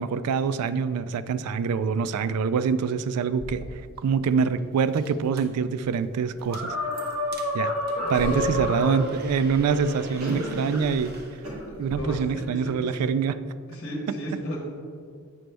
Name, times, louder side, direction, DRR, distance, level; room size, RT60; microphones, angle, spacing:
voice 1, 0.0-3.6 4.0-6.7 7.5-7.7 8.1-11.1 11.8-13.4, right 6 dB, 85° right, 13 dB, 0.3 m, -25 dB
sound 1, 3.3-12.0, right 1 dB, 45° right, 0.7 m, -43 dB
sound 2, 6.5-9.0 10.2-10.8 11.4-11.6, left 1 dB, 70° right, 1.5 m, -29 dB
voice 2, 7.9-8.6 9.6-10.2 11.7-13.0 13.7-14.6, equal, 50° left, -2 dB, 1.2 m, -35 dB
7.7 x 5.1 x 3.3 m, 2.2 s
head